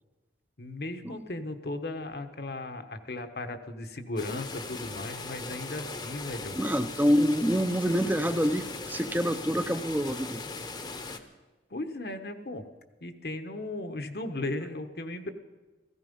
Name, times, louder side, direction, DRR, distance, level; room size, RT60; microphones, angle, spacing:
voice 1, 0.6-6.6 11.7-12.7 13.0-15.3, left 2 dB, 60° left, 7 dB, 1.2 m, -36 dB
sound 1, 4.2-11.2, left 3 dB, 25° left, 0.9 m, -39 dB
voice 2, 6.5-10.4, equal, 10° right, 11 dB, 0.6 m, -26 dB
16.5 x 15.5 x 5.4 m, 1.3 s
head